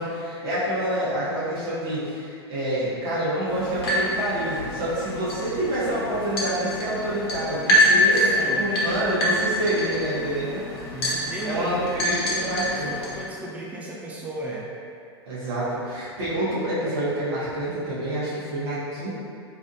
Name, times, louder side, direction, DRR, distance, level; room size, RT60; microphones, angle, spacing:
voice 1, 0.0-10.6 11.4-12.9 15.2-19.1, right 1 dB, 75° right, -11 dB, 1.3 m, -27 dB
sound 1, 3.5-13.2, left 1 dB, 65° left, 1.2 m, -26 dB
voice 2, 7.8-8.6 10.9-11.7 12.0-14.7, right 1 dB, 10° right, -4 dB, 0.5 m, -36 dB
3.6 x 3.4 x 2.6 m, 2.4 s
hypercardioid pair, 100°, 14 cm